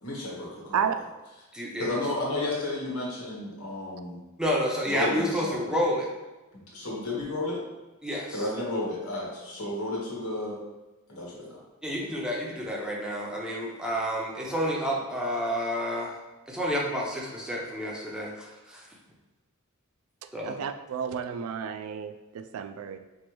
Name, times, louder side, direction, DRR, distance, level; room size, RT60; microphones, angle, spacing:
voice 1, 0.0-0.9 1.8-4.2 4.9-5.7 6.5-7.6 8.3-10.6 11.1-11.6, left 2 dB, 90° left, -4 dB, 1.2 m, -32 dB
voice 2, 1.5-1.9 4.4-6.1 8.0-8.5 11.8-16.2 16.5-18.9 20.3-20.6, equal, 5° right, -3 dB, 0.6 m, -30 dB
voice 3, 20.4-23.0, right 7 dB, 75° right, 7 dB, 0.3 m, -31 dB
4.5 x 2.6 x 3.0 m, 1.1 s
head